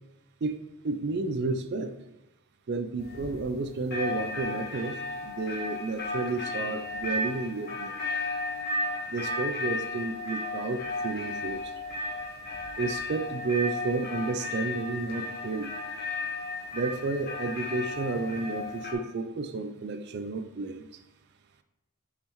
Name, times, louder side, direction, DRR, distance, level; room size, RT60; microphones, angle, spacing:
voice 1, 0.8-1.9 2.7-7.9 9.1-11.7 12.8-15.7 16.7-20.9, right 3 dB, 50° right, 9 dB, 0.4 m, -31 dB
sound 1, 3.0-3.6 3.9-18.9, left 2 dB, 45° left, 1.4 m, -34 dB
7.2 x 5.5 x 3.1 m, 0.92 s
head